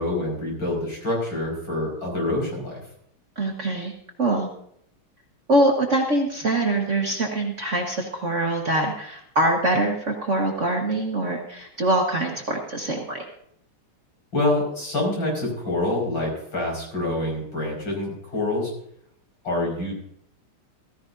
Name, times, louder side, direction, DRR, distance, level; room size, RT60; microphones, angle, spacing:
voice 1, 0.0-2.8 14.3-18.7 19.4-19.9, left 2 dB, 60° left, -2 dB, 6.2 m, -26 dB
voice 2, 3.4-3.9 4.2-4.5 5.5-13.2, right 1 dB, 40° right, 1 dB, 1.5 m, -23 dB
15.5 x 15.5 x 2.7 m, 0.70 s
omnidirectional pair, 2.4 m